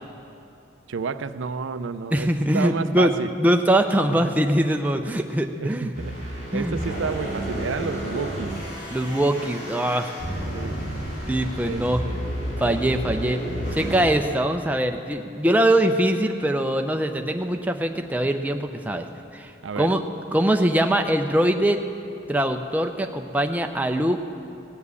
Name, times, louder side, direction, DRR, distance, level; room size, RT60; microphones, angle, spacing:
voice 1, 0.9-2.3 2.5-3.3 4.2-4.3 5.6-8.5 10.5-10.8 11.6-12.2 19.6-19.9, right 5 dB, 85° right, 12 dB, 0.5 m, -30 dB
voice 2, 2.1-5.9 6.5-6.8 8.9-10.1 11.3-12.0 12.6-13.4 13.7-19.1 19.3-19.5 19.8-20.0 20.3-21.8 22.3-24.2, right 1 dB, 10° right, 5 dB, 0.5 m, -22 dB
sound 1, 5.9-14.1, equal, 50° left, 3.6 m, -31 dB
18.0 x 7.3 x 8.2 m, 2.7 s
head